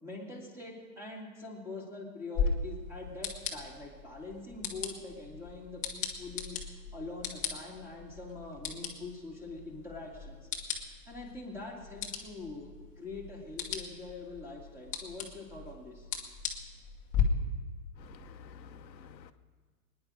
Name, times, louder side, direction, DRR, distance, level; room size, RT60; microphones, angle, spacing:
voice 1, 0.0-16.1, left 3 dB, 5° right, -1 dB, 2.3 m, -44 dB
sound 1, 2.3-17.2, left 7 dB, 15° left, 1.2 m, -38 dB
voice 2, 18.0-19.3, left 6 dB, 80° left, 8 dB, 1.0 m, -51 dB
22.5 x 10.5 x 5.0 m, 1.4 s
hypercardioid pair, 145°, 50 cm